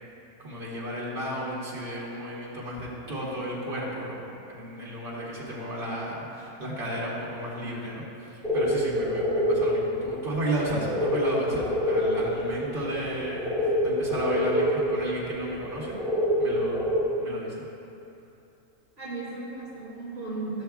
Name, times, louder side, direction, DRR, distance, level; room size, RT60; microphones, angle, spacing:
voice 1, 0.4-8.0 8.5-16.0 16.4-17.5, right 1 dB, 40° right, -6 dB, 1.8 m, -33 dB
sound 1, 8.4-17.0, equal, 5° right, 0.4 m, -27 dB
voice 2, 19.0-20.6, right 3 dB, 55° right, -8 dB, 1.5 m, -36 dB
13.5 x 7.0 x 2.3 m, 2.8 s
omnidirectional pair, 1.6 m